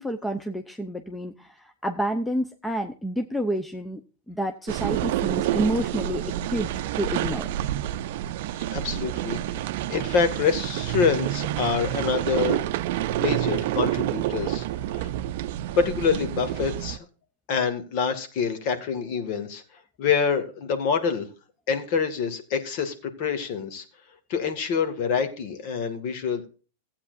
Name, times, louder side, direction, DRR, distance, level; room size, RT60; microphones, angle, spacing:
voice 1, 0.0-4.0 4.3-7.5, right 1 dB, 5° left, 7 dB, 0.8 m, -29 dB
sound 1, 4.7-17.0, right 13 dB, 60° right, 0.5 m, -28 dB
voice 2, 8.7-9.6 9.9-12.7 13.2-14.7 14.9-15.1 15.8-17.0 17.5-19.6 20.0-21.3 21.7-23.8 24.3-26.5, left 6 dB, 55° left, 8 dB, 2.1 m, -26 dB
15.5 x 8.6 x 2.6 m, 0.34 s
hypercardioid pair, 115°, 0 cm